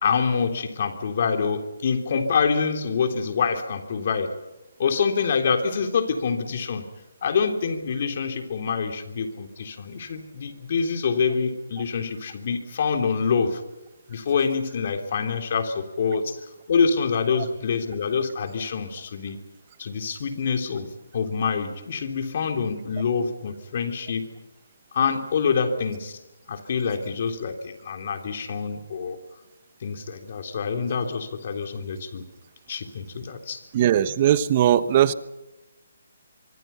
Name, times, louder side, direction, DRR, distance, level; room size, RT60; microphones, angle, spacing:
voice 1, 0.0-4.4 4.8-6.8 7.2-13.6 14.1-16.4 16.7-19.4 19.8-24.3 24.9-26.2 26.5-29.2 29.8-32.3 32.7-33.6, left 5 dB, 50° left, 5 dB, 3.5 m, -26 dB
voice 2, 33.7-35.1, right 11 dB, 35° right, 14 dB, 1.1 m, -19 dB
25.5 x 24.5 x 5.8 m, 1.0 s
hypercardioid pair, 155°, 0 cm